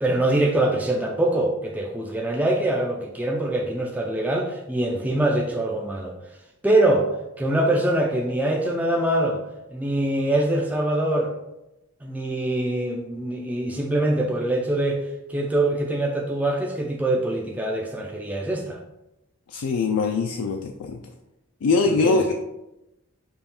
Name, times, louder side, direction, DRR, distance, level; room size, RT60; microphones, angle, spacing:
voice 1, 0.0-6.1 6.6-7.1 7.4-9.4 9.7-11.3 12.0-15.0 15.3-18.8 22.0-22.3, right 1 dB, 5° right, 0 dB, 0.3 m, -23 dB
voice 2, 19.5-21.0 21.6-22.3, left 4 dB, 75° left, 3 dB, 0.4 m, -22 dB
5.3 x 2.3 x 4.2 m, 0.93 s
head